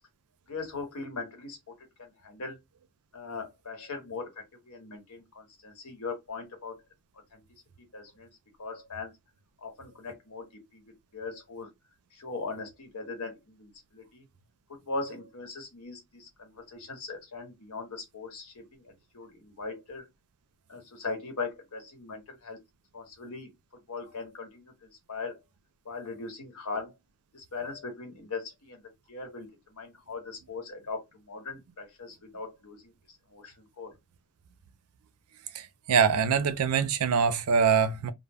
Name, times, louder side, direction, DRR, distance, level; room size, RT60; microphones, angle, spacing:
voice 1, 0.5-1.6 2.0-2.6 3.1-6.7 7.3-7.4 7.9-8.3 8.6-9.1 9.6-11.7 12.1-14.2 14.7-20.1 20.7-22.6 22.9-23.5 23.9-25.4 25.8-26.9 27.3-28.8 29.1-32.9 33.3-33.9, left 4 dB, 85° left, 1.0 m, -40 dB
voice 2, 35.6-38.1, right 6 dB, 80° right, 0.4 m, -24 dB
2.1 x 2.0 x 3.4 m
head